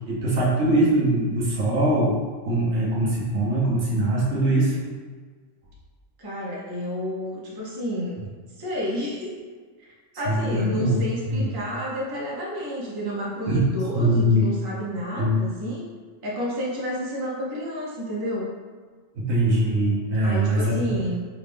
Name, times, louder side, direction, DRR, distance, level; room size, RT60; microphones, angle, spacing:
voice 1, 0.1-2.2 2.5-4.8 10.2-11.5 13.5-13.6 14.0-14.4 15.2-15.4 19.2-20.9, right 1 dB, 60° right, -5 dB, 1.0 m, -22 dB
voice 2, 6.2-8.2 8.6-9.4 9.8-15.8 16.2-18.5 20.2-21.3, equal, 20° right, -6 dB, 0.7 m, -30 dB
4.7 x 2.4 x 3.4 m, 1.5 s
omnidirectional pair, 1.4 m